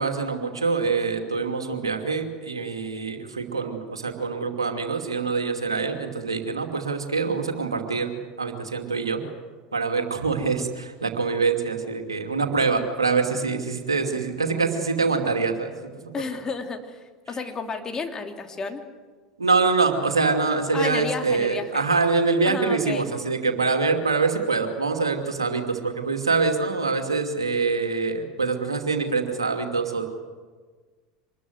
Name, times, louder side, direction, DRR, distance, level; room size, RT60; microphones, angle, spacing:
voice 1, 0.0-9.2 9.7-16.2 19.4-30.0, right 4 dB, 85° right, 4 dB, 2.6 m, -25 dB
voice 2, 16.1-18.8 20.7-21.8 22.4-23.1, left 4 dB, 25° left, 4 dB, 3.1 m, -32 dB
25.5 x 21.0 x 8.0 m, 1.4 s
figure-of-eight pair, 75°, 3 cm